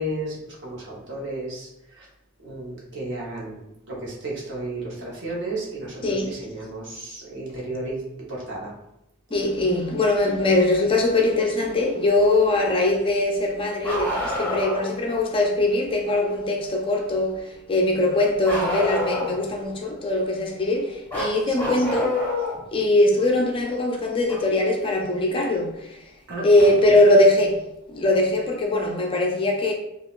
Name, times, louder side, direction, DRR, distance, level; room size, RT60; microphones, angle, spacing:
voice 1, 0.0-2.1 2.4-3.6 3.9-8.0 8.3-8.7 21.4-21.8 26.3-26.9, right 1 dB, 60° right, 1.0 m, -33 dB
voice 2, 6.0-6.3 9.3-22.2 22.7-26.0 26.4-29.7, left 2 dB, 25° left, 0.4 m, -21 dB
Bark, 13.8-14.9 18.5-19.5 21.1-22.6 24.3-24.4 26.3-26.4 27.5-27.6, left 1 dB, 10° left, 0.8 m, -27 dB
3.8 x 2.3 x 2.4 m
head